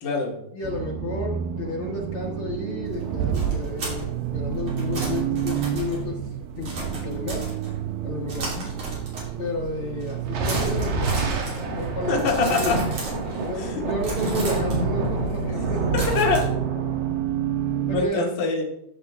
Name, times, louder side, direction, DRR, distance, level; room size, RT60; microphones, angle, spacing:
voice 1, 0.0-0.4 8.4-8.6 12.1-12.8 13.6-13.8 15.9-16.4 17.9-18.6, left 4 dB, 35° left, -2 dB, 2.2 m, -24 dB
voice 2, 0.5-6.2 6.6-7.5 8.0-8.5 9.4-12.1 12.4-12.8 13.5-16.0 17.9-18.2, left 2 dB, 70° left, -2 dB, 1.2 m, -32 dB
Accelerating revving vroom, 0.6-18.1, right 9 dB, 90° right, 1.9 m, -30 dB
sound 1, 2.8-7.9 8.3-9.6 9.9-10.2 10.4-13.7 14.0-16.4, right 2 dB, 40° right, 4.3 m, -35 dB
sound 2, 3.0-6.3 10.2-17.2, right 2 dB, 65° right, 3.2 m, -29 dB
14.5 x 7.0 x 3.5 m, 0.74 s
omnidirectional pair, 4.5 m